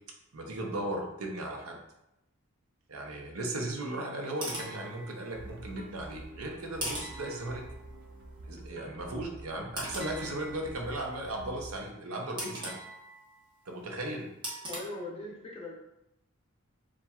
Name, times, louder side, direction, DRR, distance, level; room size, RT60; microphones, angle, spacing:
voice 1, 0.3-1.8 2.9-7.6 8.4-12.8 13.7-14.3, right 1 dB, 80° right, 1 dB, 0.8 m, -36 dB
sound 1, 4.2-5.6 6.8-8.0 9.8-11.0 12.4-13.7 14.4-14.8, right 1 dB, 20° right, 0.8 m, -41 dB
sound 2, 5.3-11.8, right 2 dB, 45° right, 0.4 m, -48 dB
voice 2, 14.7-15.8, left 2 dB, 25° left, -3 dB, 0.8 m, -40 dB
7.0 x 2.4 x 2.4 m, 0.85 s
head